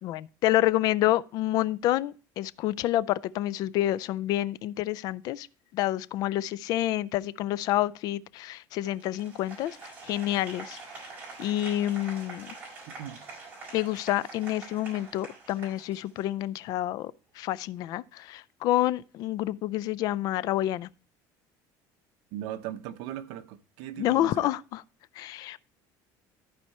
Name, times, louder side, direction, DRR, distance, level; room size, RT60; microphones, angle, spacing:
voice 1, 0.0-5.5 5.7-11.1 11.4-12.5 13.7-20.9 24.0-24.8 25.2-25.6, left 14 dB, 50° left, 0.4 m, -28 dB
Applause, 8.9-16.4, right 3 dB, 25° right, 4.9 m, -45 dB
voice 2, 12.9-13.2 22.3-24.5, right 12 dB, 80° right, 0.9 m, -38 dB
14.0 x 4.7 x 4.2 m
cardioid pair, 170°, 8 cm